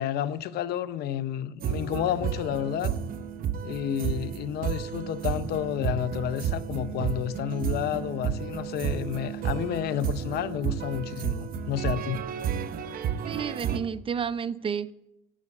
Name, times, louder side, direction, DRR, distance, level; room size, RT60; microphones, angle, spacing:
voice 1, 0.0-2.9 3.6-12.2, left 11 dB, 70° left, 0.7 m, -30 dB
sound 1, 1.6-13.8, right 8 dB, 60° right, 0.8 m, -32 dB
voice 2, 13.3-14.9, right 7 dB, 30° right, 0.5 m, -31 dB
11.5 x 7.5 x 8.5 m
cardioid pair, 110°, 17 cm